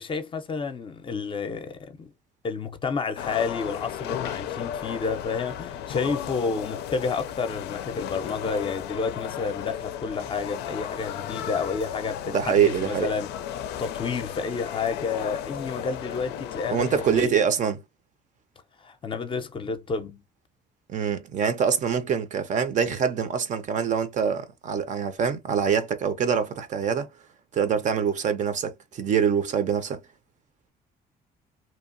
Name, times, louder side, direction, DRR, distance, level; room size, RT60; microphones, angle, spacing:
voice 1, 0.0-2.1 2.4-13.3 13.8-17.3 18.8-20.2, left 5 dB, 30° left, 0.5 m, -30 dB
sound 1, 3.2-17.2, left 10 dB, 80° left, 0.4 m, -35 dB
voice 2, 12.3-13.1 16.7-17.8 20.9-27.1 27.5-30.0, right 7 dB, 45° right, 0.6 m, -24 dB
2.8 x 2.2 x 2.5 m
cardioid pair, 110°, 17 cm